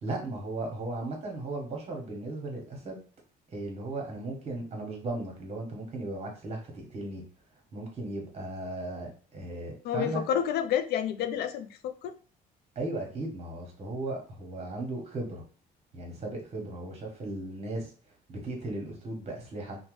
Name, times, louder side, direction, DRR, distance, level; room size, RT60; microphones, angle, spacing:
voice 1, 0.0-3.0 3.5-7.2 7.7-10.2 12.7-15.4 15.9-17.9 18.3-19.8, right 2 dB, 40° right, 1 dB, 1.1 m, -36 dB
voice 2, 9.8-12.1, left 9 dB, 70° left, 10 dB, 0.4 m, -29 dB
2.7 x 2.2 x 3.1 m, 0.40 s
cardioid pair, 110°, 17 cm